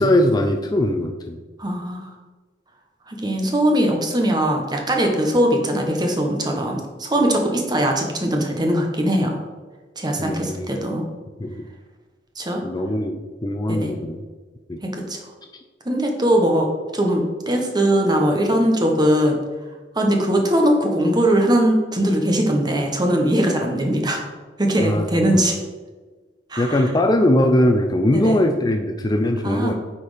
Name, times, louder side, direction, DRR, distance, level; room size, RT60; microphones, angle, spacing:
voice 1, 0.0-1.4 10.2-10.7 11.4-11.6 12.6-14.2 14.7-14.8 24.8-25.0 26.6-29.7, left 1 dB, 20° left, 5 dB, 0.5 m, -20 dB
voice 2, 1.6-2.1 3.1-9.4 10.0-11.0 12.4-12.6 13.7-13.9 14.8-15.2 15.8-19.4 19.9-24.2 24.6-25.6 26.5-26.8 28.1-28.4 29.4-29.7, right 1 dB, 25° right, 2 dB, 1.2 m, -20 dB
9.2 x 4.3 x 5.1 m, 1.3 s
head